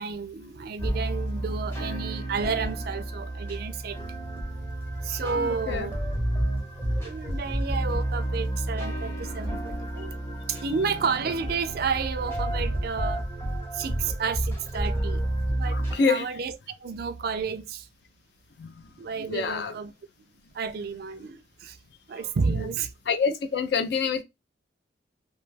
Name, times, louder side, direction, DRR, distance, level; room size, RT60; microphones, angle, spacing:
voice 1, 0.0-4.0 5.0-6.0 7.0-10.2 10.5-13.3 13.7-15.2 15.5-16.5 16.8-17.9 19.0-19.9 20.5-21.8 22.1-23.2, right 5 dB, 55° right, 0.4 m, -31 dB
sound 1, 0.8-15.9, right 1 dB, 15° left, 0.8 m, -30 dB
voice 2, 5.4-5.9 15.7-16.3 18.6-18.9 19.3-19.7 23.1-24.2, left 5 dB, 65° left, 0.4 m, -27 dB
2.7 x 2.3 x 3.2 m
head